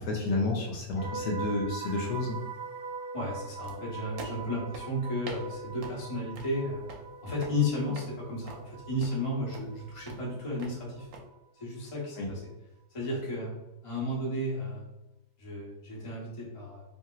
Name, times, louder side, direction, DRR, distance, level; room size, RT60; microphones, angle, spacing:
voice 1, 0.0-2.4 12.2-12.3, left 2 dB, 75° left, 0 dB, 1.1 m, -30 dB
sound 1, 1.0-11.0 11.3-11.6, right 5 dB, 60° right, 1.2 m, -42 dB
voice 2, 3.1-6.9 7.2-11.1 11.5-12.4 12.9-13.5 13.8-14.9 15.4-16.8, left 1 dB, 35° left, -4 dB, 0.5 m, -33 dB
sound 2, 3.6-11.2, right 3 dB, 80° right, 1.3 m, -48 dB
3.0 x 2.8 x 2.3 m, 0.94 s
omnidirectional pair, 2.0 m